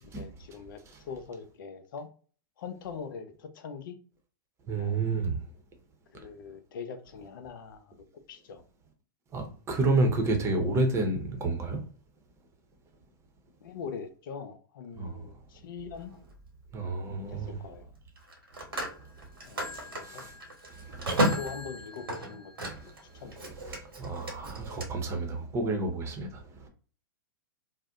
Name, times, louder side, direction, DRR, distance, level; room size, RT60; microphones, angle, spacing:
voice 1, 0.0-2.1 2.6-4.0 4.8-5.0 6.1-8.6 11.0-11.1 13.6-16.1 17.1-18.0 19.4-20.3 21.3-22.8 23.1-23.5, left 6 dB, 65° left, 0.6 m, -43 dB
voice 2, 4.7-5.3 9.3-11.8 15.0-15.2 16.7-17.6 20.0-20.3 20.8-21.1 24.0-26.7, right 3 dB, 25° right, 0.7 m, -29 dB
Telephone, 16.0-16.2 18.2-23.0 23.3-24.9, right 1 dB, 90° right, 1.1 m, -33 dB
2.6 x 2.1 x 3.4 m
hypercardioid pair, 115°, 12 cm